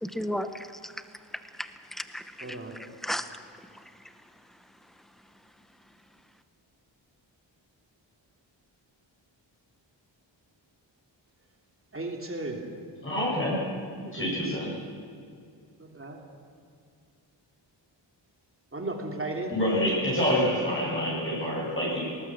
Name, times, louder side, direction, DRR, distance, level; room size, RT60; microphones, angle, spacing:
voice 1, 0.0-0.9 1.6-2.6 3.0-3.9, equal, ahead, 10 dB, 0.9 m, -35 dB
voice 2, 2.4-2.8 11.9-12.7 14.0-14.6 15.8-16.2 18.7-19.6, right 2 dB, 30° right, 1 dB, 2.9 m, -35 dB
voice 3, 13.0-13.6 14.1-14.7 19.5-22.0, equal, 25° left, -6 dB, 6.9 m, -27 dB
20.5 x 19.0 x 7.5 m, 2.4 s
wide cardioid pair, 130°, 46 cm